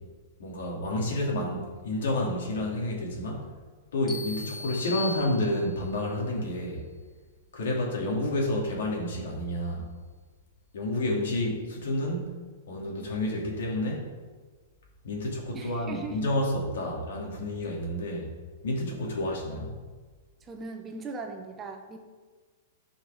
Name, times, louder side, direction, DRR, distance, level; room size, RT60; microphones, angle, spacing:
voice 1, 0.4-3.4 3.9-6.9 7.5-9.9 10.7-12.3 12.7-14.1 15.0-18.3 18.6-19.7, left 1 dB, 75° left, -2 dB, 3.2 m, -30 dB
sound 1, 4.1-6.0, left 3 dB, 10° left, 1.0 m, -38 dB
voice 2, 15.5-16.2 20.4-22.0, right 4 dB, 15° right, 3 dB, 0.7 m, -39 dB
14.5 x 5.7 x 3.9 m, 1.4 s
supercardioid pair, 170°, 0 cm